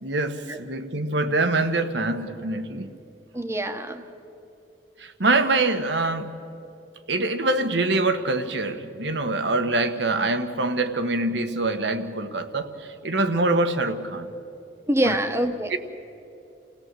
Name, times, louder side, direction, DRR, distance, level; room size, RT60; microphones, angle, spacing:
voice 1, 0.0-2.9 5.0-6.4 7.1-12.7 13.0-14.3 15.0-15.2 15.7-15.8, right 2 dB, 70° right, 8 dB, 1.3 m, -24 dB
voice 2, 3.3-4.0 14.9-15.8, right 1 dB, 15° right, 7 dB, 1.1 m, -25 dB
28.5 x 17.0 x 7.6 m, 2.9 s
head